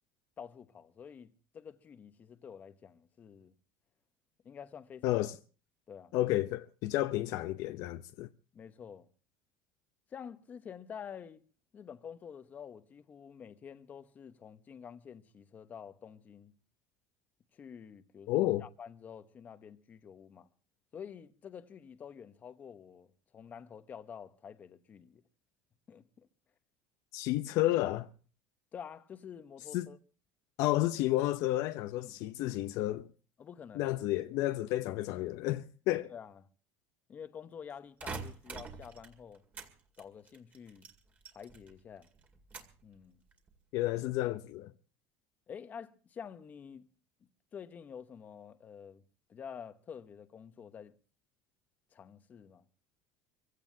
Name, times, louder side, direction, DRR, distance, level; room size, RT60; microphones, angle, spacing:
voice 1, 0.4-3.5 4.4-5.2 5.9-6.1 8.5-9.1 10.1-11.4 11.7-16.5 17.5-20.5 20.9-25.2 25.9-26.3 28.7-30.0 32.0-32.2 33.4-34.0 34.6-34.7 36.1-36.5 37.1-39.4 40.0-40.9 41.3-42.1 42.8-43.2 45.5-46.9 47.5-49.0 49.3-50.9 51.9-52.7, left 7 dB, 25° left, 1.0 m, -48 dB
voice 2, 5.0-5.4 6.1-8.3 18.3-18.6 27.1-28.1 29.7-29.9 30.6-33.1 33.7-36.1 43.7-44.7, left 16 dB, 60° left, 0.7 m, -31 dB
sound 1, 38.0-39.7 40.0-41.8 42.0-42.8 43.3-43.8, right 5 dB, 25° right, 2.1 m, -45 dB
25.5 x 16.0 x 2.7 m
cardioid pair, 160°, 6 cm